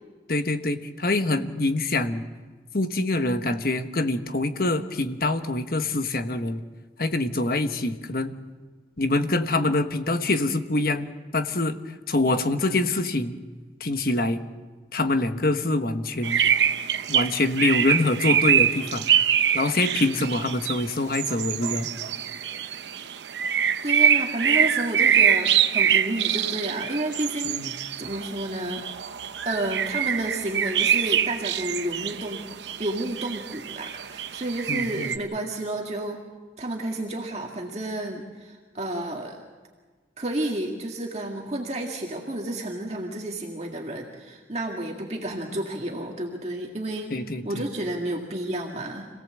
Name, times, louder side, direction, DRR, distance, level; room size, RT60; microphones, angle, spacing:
voice 1, 0.3-2.2 2.7-6.6 7.0-8.3 9.0-11.1 11.3-11.8 12.1-13.4 13.8-14.4 14.9-16.4 17.1-19.1 19.5-21.9 27.4-27.7 34.7-35.1 47.1-47.6, left 2 dB, 55° left, 8 dB, 1.2 m, -25 dB
sound 1, 16.2-35.2, right 8 dB, 85° right, 0.8 m, -25 dB
voice 2, 23.8-28.8 29.4-32.4 32.8-36.2 36.6-39.4 40.2-47.1 47.4-49.1, right 1 dB, 35° right, 0 dB, 2.0 m, -31 dB
27.0 x 17.5 x 7.7 m, 1.4 s
head